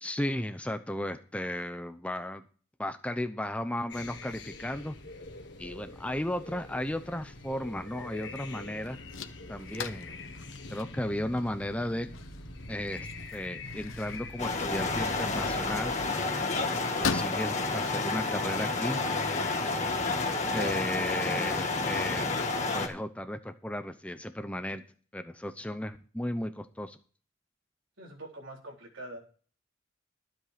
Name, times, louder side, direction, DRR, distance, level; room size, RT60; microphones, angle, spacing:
voice 1, 0.0-2.4 2.8-5.0 5.6-9.0 9.5-10.2 10.7-12.1 12.7-15.9 16.8-19.0 20.5-22.3 22.7-24.8 25.1-27.0, left 1 dB, 5° left, 8 dB, 0.7 m, -35 dB
sound 1, 3.9-16.1, left 2 dB, 60° left, 1.7 m, -45 dB
sound 2, 8.2-20.5, left 5 dB, 85° left, 1.0 m, -42 dB
sound 3, 14.4-22.9, left 3 dB, 35° left, 1.8 m, -30 dB
voice 2, 20.5-20.9 28.0-29.2, right 1 dB, 80° right, 0 dB, 3.9 m, -42 dB
12.5 x 7.7 x 5.1 m, 0.41 s
head